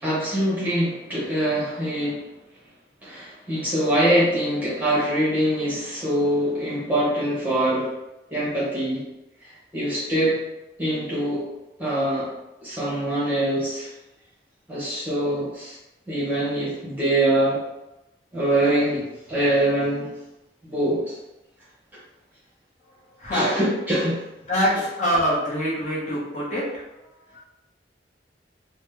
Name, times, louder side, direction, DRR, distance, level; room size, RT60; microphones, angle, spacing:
voice 1, 0.0-2.2 3.0-7.9 8.3-9.0 9.7-10.4 10.8-11.5 11.8-12.3 12.6-13.9 14.7-15.8 16.1-17.6 18.3-20.1 20.7-21.0 23.3-24.2 24.7-24.8, right 1 dB, 10° right, -9 dB, 1.1 m, -23 dB
voice 2, 23.2-23.5 24.5-26.6, equal, 40° left, -7 dB, 0.8 m, -24 dB
3.1 x 2.1 x 3.4 m, 0.95 s
head